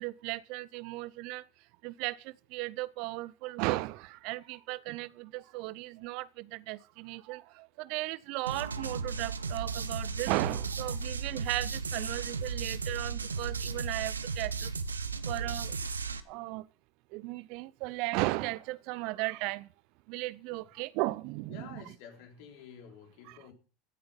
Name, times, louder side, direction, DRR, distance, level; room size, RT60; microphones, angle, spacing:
voice 1, 0.0-1.4 1.8-14.7 15.3-15.8 16.3-16.6 17.1-19.7 20.1-21.8 23.3-23.4, right 21 dB, 60° right, 0.6 m, -36 dB
sound 1, 8.5-16.2, right 4 dB, 90° right, 0.8 m, -35 dB
voice 2, 21.5-23.5, left 7 dB, 65° left, 3.7 m, -50 dB
15.0 x 8.5 x 5.6 m
hypercardioid pair, 80°, 0 cm